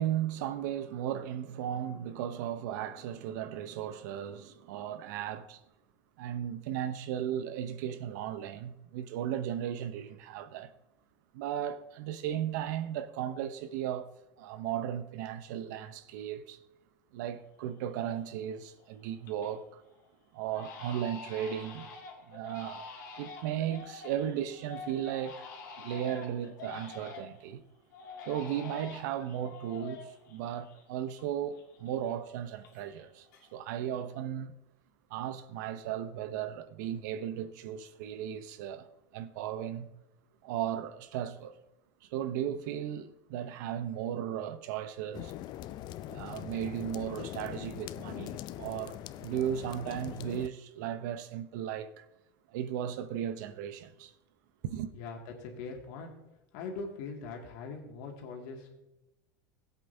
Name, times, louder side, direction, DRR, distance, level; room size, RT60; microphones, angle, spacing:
voice 1, 0.0-5.6 6.2-10.7 11.3-14.1 14.4-16.6 17.1-19.8 20.3-21.9 22.2-22.9 23.2-25.5 25.8-27.6 28.3-33.3 33.5-34.5 35.1-38.9 39.1-39.9 40.4-41.5 42.0-45.3 46.1-52.1 52.5-54.1 54.6-54.9, right 10 dB, 75° right, 0.8 m, -36 dB
Crying sobbing, 17.4-17.5 17.9-18.4 18.8-19.6 19.9-20.1 20.5-27.5 27.9-31.3 31.5-33.0 33.3-33.9, left 5 dB, 85° left, 1.9 m, -47 dB
sound 1, 45.1-50.5, left 13 dB, 45° left, 0.4 m, -42 dB
voice 2, 54.9-56.1 56.5-58.7, left 4 dB, 70° left, 2.2 m, -41 dB
17.0 x 8.2 x 2.8 m
supercardioid pair, 120°, 10 cm